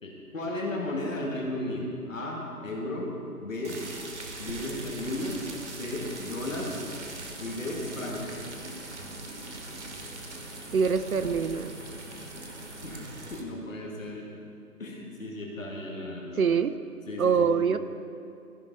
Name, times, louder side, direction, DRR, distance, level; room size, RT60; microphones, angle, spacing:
voice 1, 0.0-3.1 3.4-3.8 4.4-5.4 5.8-6.7 7.4-8.4 12.8-14.3 14.8-16.5 17.1-17.7, left 1 dB, 55° left, -1 dB, 2.0 m, -34 dB
sound 1, 3.6-13.4, right 2 dB, 45° right, 1.1 m, -41 dB
sound 2, 5.9-12.9, left 1 dB, ahead, 1.4 m, -51 dB
voice 2, 10.7-11.7 16.4-16.7 17.2-17.8, right 6 dB, 65° right, 11 dB, 0.5 m, -24 dB
15.0 x 5.5 x 3.7 m, 2.5 s
hypercardioid pair, 175°, 47 cm